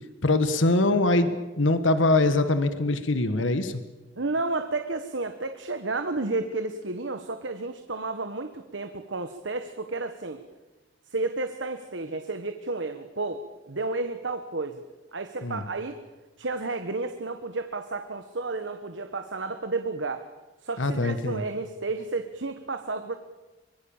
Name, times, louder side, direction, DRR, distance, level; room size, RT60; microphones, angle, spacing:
voice 1, 0.2-3.8 15.4-15.6 20.8-21.4, left 2 dB, 85° left, 10 dB, 1.6 m, -23 dB
voice 2, 4.2-10.4 11.1-14.8 15.1-16.0 16.4-20.3 20.6-23.2, right 3 dB, 70° right, 8 dB, 1.3 m, -32 dB
24.5 x 21.5 x 7.3 m, 1.2 s
head